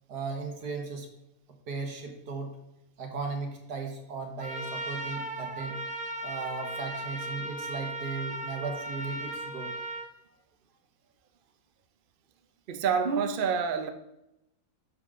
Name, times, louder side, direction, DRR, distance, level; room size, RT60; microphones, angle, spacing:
voice 1, 0.1-1.1 1.7-2.5 3.0-5.8 6.2-9.7, right 4 dB, 75° right, 2 dB, 2.0 m, -36 dB
Trumpet, 4.4-10.1, right 2 dB, 5° right, 0.6 m, -37 dB
voice 2, 12.7-13.9, right 6 dB, 50° right, 8 dB, 0.6 m, -27 dB
10.0 x 6.6 x 3.7 m, 0.88 s
omnidirectional pair, 1.7 m